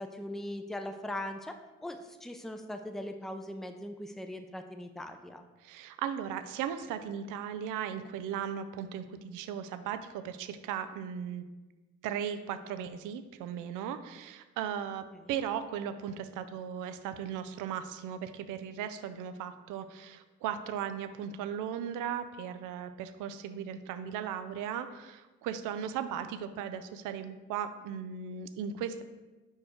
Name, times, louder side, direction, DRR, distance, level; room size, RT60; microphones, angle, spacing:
voice 1, 0.0-1.6 1.8-5.4, left 1 dB, ahead, 6 dB, 0.6 m, -40 dB
voice 2, 5.6-11.5 12.0-29.0, right 8 dB, 85° right, 10 dB, 0.5 m, -37 dB
4.8 x 4.5 x 4.3 m, 1.2 s
supercardioid pair, 45°, 31 cm